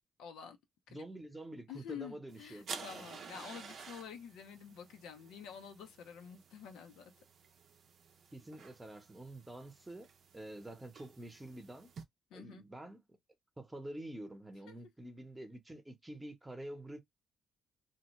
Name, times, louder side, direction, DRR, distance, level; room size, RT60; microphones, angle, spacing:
voice 1, 0.2-0.6 0.9-1.1 1.7-7.1 12.3-12.6 14.7-14.8, left 7 dB, 90° left, 0.6 m, -49 dB
voice 2, 0.9-3.1 8.3-10.1 10.3-11.9 12.3-13.0 13.6-17.0, right 1 dB, 10° right, 0.8 m, -47 dB
sound 1, 2.3-12.0, right 6 dB, 60° right, 0.5 m, -52 dB
2.7 x 2.1 x 2.9 m
cardioid pair, 90°, 0 cm